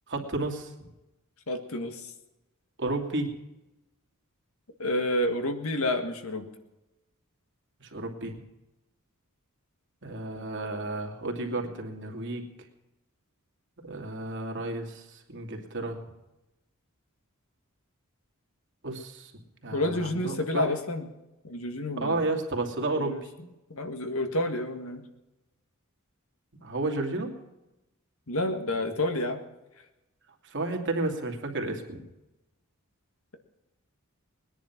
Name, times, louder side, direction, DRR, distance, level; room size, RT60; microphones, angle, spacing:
voice 1, 0.1-0.7 2.8-3.3 7.8-8.4 10.0-12.5 13.8-15.0 15.3-16.0 18.8-19.3 19.6-20.7 22.0-23.2 26.6-27.3 30.5-32.0, right 2 dB, 55° right, 3 dB, 2.6 m, -32 dB
voice 2, 1.5-2.0 4.8-6.5 19.7-21.1 21.4-22.2 22.9-23.2 23.7-25.0 28.3-29.4, left 1 dB, 70° left, 6 dB, 1.9 m, -29 dB
20.5 x 10.5 x 5.9 m, 0.97 s
head